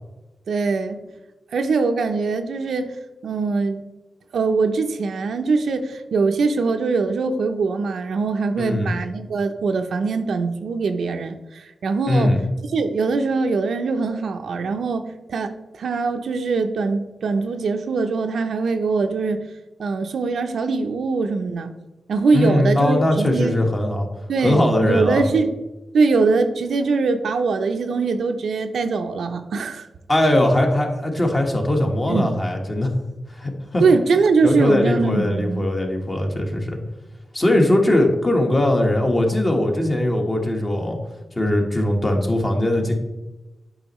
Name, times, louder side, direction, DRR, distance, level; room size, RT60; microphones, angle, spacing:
voice 1, 0.5-1.0 1.5-2.9 3.2-3.8 4.3-12.3 12.7-19.5 19.8-21.7 22.1-23.6 24.3-25.5 25.9-29.9 32.1-32.3 33.8-35.7, right 4 dB, 80° right, 7 dB, 0.6 m, -22 dB
voice 2, 8.6-8.9 12.0-12.4 22.3-24.1 24.4-25.2 30.1-32.9 33.3-33.8 34.4-36.8 37.3-41.0 41.4-42.9, left 1 dB, 30° left, 2 dB, 1.3 m, -20 dB
8.6 x 5.3 x 3.1 m, 1.1 s
cardioid pair, 90°, 0 cm